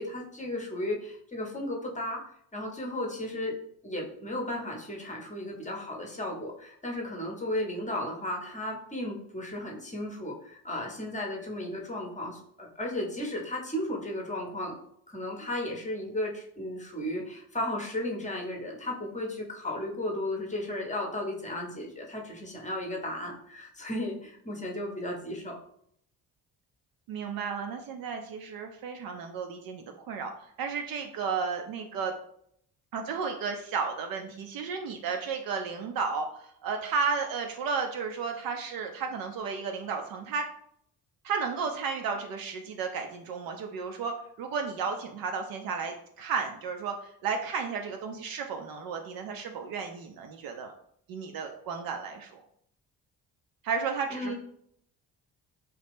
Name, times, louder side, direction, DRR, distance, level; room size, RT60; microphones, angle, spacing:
voice 1, 0.0-2.2 2.5-3.6 3.8-14.8 15.1-25.6 54.1-54.3, left 1 dB, 15° left, 0 dB, 0.8 m, -34 dB
voice 2, 27.1-30.3 30.6-32.1 32.9-40.4 41.2-50.7 51.1-52.4 53.6-54.3, right 5 dB, 50° right, 4 dB, 0.5 m, -33 dB
2.8 x 2.3 x 3.4 m, 0.68 s
figure-of-eight pair, 40°, 49 cm